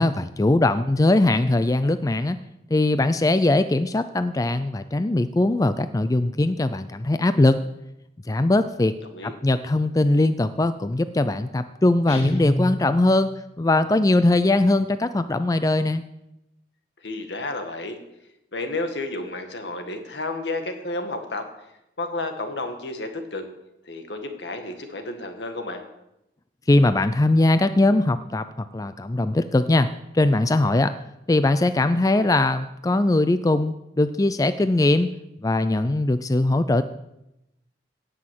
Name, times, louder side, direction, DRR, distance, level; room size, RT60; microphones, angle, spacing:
voice 1, 0.0-2.4 2.7-7.6 8.3-8.9 9.2-13.3 13.6-16.0 26.7-29.9 30.1-30.9 31.3-35.1 35.4-36.8, left 2 dB, 20° left, 12 dB, 0.4 m, -20 dB
Guitar, 12.1-13.3, left 1 dB, 35° left, 2.4 m, -29 dB
voice 2, 17.0-18.0 18.5-21.5 22.0-23.4 23.8-25.8, left 2 dB, 80° left, 6 dB, 1.9 m, -31 dB
18.0 x 6.2 x 7.6 m, 0.89 s
head